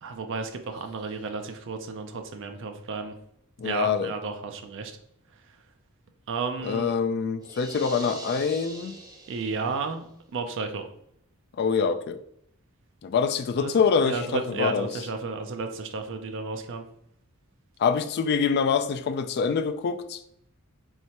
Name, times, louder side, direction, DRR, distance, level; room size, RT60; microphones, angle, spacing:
voice 1, 0.0-3.1 3.6-5.0 6.3-6.9 8.0-8.2 9.3-10.8 13.6-13.7 14.0-16.8, right 4 dB, 55° right, 0.4 m, -33 dB
voice 2, 3.6-4.1 6.6-9.0 11.6-12.2 13.0-14.9 17.8-20.2, left 6 dB, 45° left, 0.3 m, -25 dB
sound 1, 7.4-9.9, right 1 dB, 15° right, 0.6 m, -43 dB
4.6 x 3.2 x 2.9 m
head